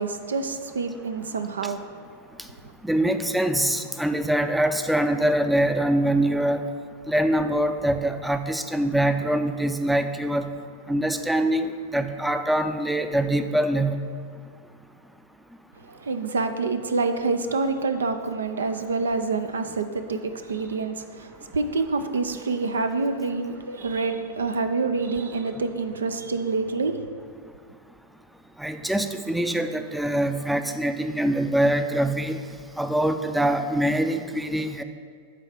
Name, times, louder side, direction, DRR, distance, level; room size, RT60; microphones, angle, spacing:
voice 1, 0.0-2.0 15.8-27.0, right 3 dB, 85° right, 8 dB, 0.4 m, -27 dB
voice 2, 2.8-6.6 7.1-10.5 10.9-14.0 28.6-32.4 32.8-34.8, right 1 dB, 5° right, 8 dB, 0.4 m, -24 dB
8.1 x 3.7 x 5.7 m, 2.1 s
hypercardioid pair, 100°, 0 cm